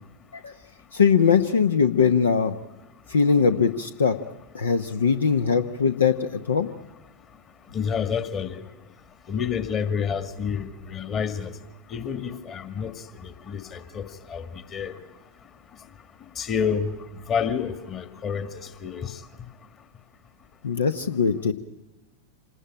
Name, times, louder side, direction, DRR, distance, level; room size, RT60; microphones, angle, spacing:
voice 1, 0.9-2.5 3.1-4.2 4.5-6.7 20.6-21.5, left 6 dB, 70° left, 10 dB, 0.9 m, -21 dB
voice 2, 7.7-8.6 9.3-11.5 11.9-12.9 13.2-14.5 14.7-14.9 16.4-16.9 17.3-18.5 18.8-19.1, left 7 dB, 30° left, 9 dB, 1.8 m, -28 dB
26.5 x 19.5 x 8.9 m, 1.1 s
figure-of-eight pair, 90°, 0 cm